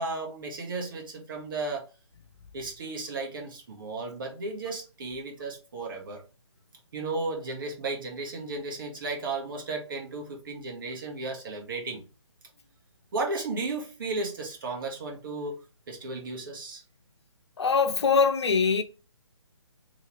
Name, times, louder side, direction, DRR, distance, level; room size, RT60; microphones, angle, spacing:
voice 1, 0.0-1.9 2.5-6.2 6.9-12.0 13.1-15.6 15.9-16.8, right 3 dB, 45° right, 1.5 m, -34 dB
voice 2, 17.6-18.8, left 5 dB, 65° left, 0.8 m, -22 dB
3.5 x 3.1 x 3.4 m
hypercardioid pair, 155°, 15 cm